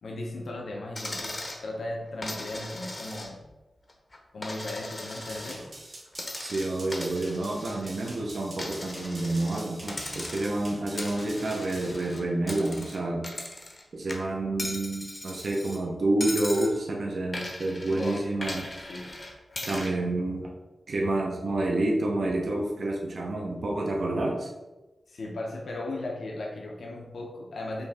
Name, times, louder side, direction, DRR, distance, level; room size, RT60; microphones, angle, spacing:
voice 1, 0.0-3.4 4.3-5.7 17.9-18.3 18.8-19.2 25.1-27.9, left 2 dB, 80° left, 0 dB, 0.6 m, -36 dB
Coin (dropping), 1.0-1.6 2.2-3.5 3.9-5.6 6.1-8.2 8.6-9.6 9.9-10.6 11.0-13.8 14.1-15.8 16.2-16.7 17.3-19.9, left 1 dB, 35° left, 0.6 m, -38 dB
sound 1, 5.1-11.9, right 1 dB, 45° right, 1.4 m, -46 dB
voice 2, 6.4-13.3 13.9-18.7 19.6-20.5 20.9-24.5, right 2 dB, 65° right, -1 dB, 0.6 m, -29 dB
5.2 x 2.7 x 3.4 m, 1.1 s
wide cardioid pair, 115°, 0 cm